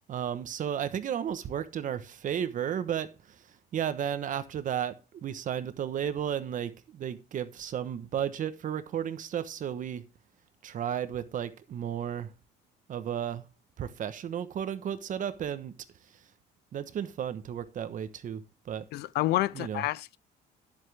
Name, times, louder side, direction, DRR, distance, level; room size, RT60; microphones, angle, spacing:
voice 1, 0.1-3.1 3.7-10.0 10.6-12.3 12.9-13.4 13.8-15.7 16.7-18.4 18.7-18.8 19.5-19.8, right 9 dB, 50° right, 1.1 m, -33 dB
voice 2, 18.9-20.2, left 16 dB, 75° left, 0.5 m, -29 dB
10.5 x 7.9 x 3.4 m
cardioid pair, 110°, 17 cm